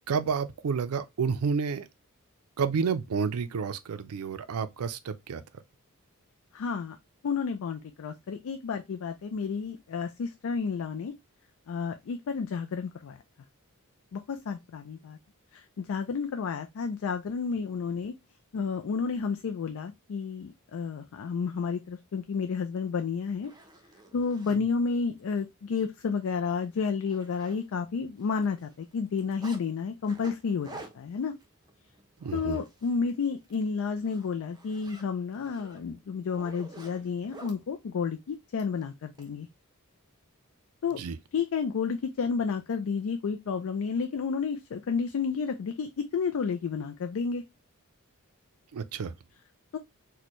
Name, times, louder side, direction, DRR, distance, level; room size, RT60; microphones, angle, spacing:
voice 1, 0.1-1.9 2.6-5.4 24.5-24.6 32.2-32.6 41.0-41.2 48.7-49.1, right 5 dB, 75° right, 0.4 m, -30 dB
voice 2, 6.5-7.0 7.2-11.1 11.7-13.2 14.1-15.2 15.5-18.1 18.5-23.5 24.1-31.3 32.3-39.5 40.8-41.0 41.3-47.4 49.7-49.8, left 5 dB, 65° left, 0.4 m, -31 dB
Zipper (clothing), 22.8-22.9 23.3-24.6 25.2-25.3 25.7-25.8 26.2-26.3 26.6-28.0 28.2-29.6 30.0-33.0 33.3-33.6 34.0-37.6 38.6-39.3, right 2 dB, 20° right, 0.7 m, -50 dB
4.2 x 2.2 x 3.0 m
head